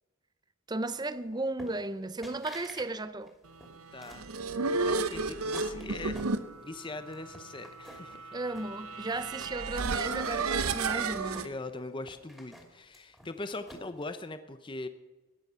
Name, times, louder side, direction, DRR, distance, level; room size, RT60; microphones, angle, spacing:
voice 1, 0.7-3.3 8.3-11.5, right 2 dB, 20° right, 0.6 m, -35 dB
sound 1, 1.6-2.0 2.2-2.9 3.2-4.3 4.9-6.8 7.1-8.2 8.5-9.3 9.8-11.8 12.1-14.0, equal, ahead, 2.6 m, -50 dB
voice 2, 3.9-4.3 4.8-6.2 6.6-8.3 11.4-14.9, left 2 dB, 20° left, 0.6 m, -41 dB
sound 2, 3.9-11.5, right 4 dB, 90° right, 0.9 m, -33 dB
17.5 x 11.0 x 5.6 m
head